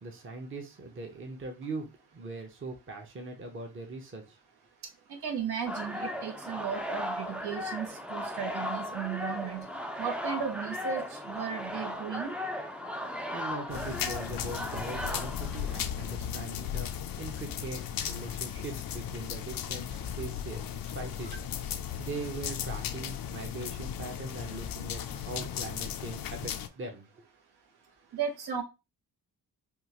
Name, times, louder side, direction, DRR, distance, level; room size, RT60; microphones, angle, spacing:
voice 1, 0.0-4.4 13.3-16.9 17.2-21.7 22.0-27.1, right 3 dB, 30° right, 2 dB, 0.8 m, -41 dB
voice 2, 5.2-9.7 10.0-12.4 28.1-28.6, right 8 dB, 75° right, 4 dB, 1.1 m, -35 dB
sound 1, 5.7-16.1, left 1 dB, 5° right, 0.4 m, -37 dB
sound 2, 13.7-26.7, left 9 dB, 60° left, 0.5 m, -36 dB
3.6 x 2.4 x 2.9 m, 0.27 s
cardioid pair, 95°, 39 cm